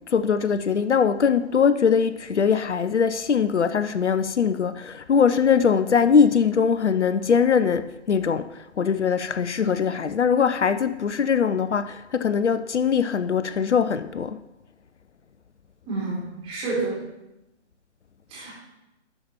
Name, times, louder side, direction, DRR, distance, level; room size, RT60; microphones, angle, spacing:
voice 1, 0.1-14.4, left 6 dB, 75° left, 0.6 m, -21 dB
voice 2, 15.9-17.0 18.3-18.5, right 3 dB, 15° right, 3.8 m, -29 dB
12.0 x 5.7 x 4.4 m
figure-of-eight pair, 130°, 35 cm